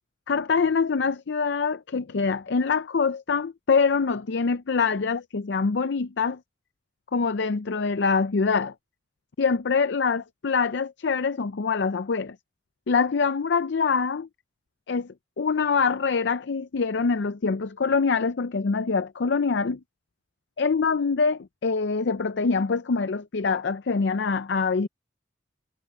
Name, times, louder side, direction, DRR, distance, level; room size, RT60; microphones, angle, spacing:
voice 1, 0.3-6.4 7.1-8.7 9.4-12.4 12.9-14.3 14.9-19.8 20.6-24.9, left 5 dB, 65° left, 0.5 m, -24 dB
head